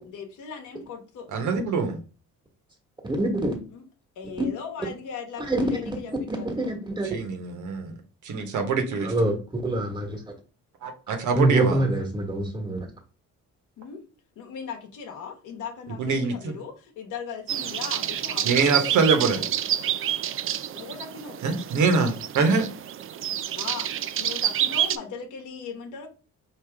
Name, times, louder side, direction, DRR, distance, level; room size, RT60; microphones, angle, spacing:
voice 1, 0.1-1.3 3.7-3.8 4.2-6.5 13.8-14.0 14.4-19.5 20.7-21.4 23.6-23.9 24.2-26.1, left 6 dB, 85° left, 2 dB, 1.1 m, -38 dB
voice 2, 1.3-2.0 7.1-7.9 8.2-9.1 10.8-11.8 16.0-16.5 18.4-19.4 21.4-22.7, right 4 dB, 75° right, 5 dB, 1.1 m, -24 dB
voice 3, 3.0-3.6 5.5-5.9 6.3-7.1 9.0-10.2 11.3-12.9, right 1 dB, 15° right, -1 dB, 1.4 m, -25 dB
sound 1, 17.5-25.0, right 10 dB, 45° right, 0.4 m, -28 dB
4.8 x 2.8 x 3.5 m, 0.35 s
cardioid pair, 90°, 30 cm